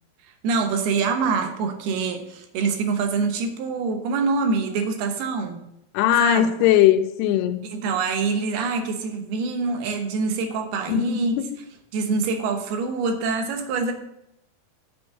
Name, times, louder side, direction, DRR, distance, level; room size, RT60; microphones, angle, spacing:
voice 1, 0.4-5.6 6.2-6.5 7.6-11.3 11.9-13.9, right 4 dB, 75° right, 2.9 m, -25 dB
voice 2, 5.9-7.6 10.9-11.5, left 11 dB, 90° left, 2.8 m, -19 dB
6.9 x 6.3 x 7.4 m
omnidirectional pair, 4.6 m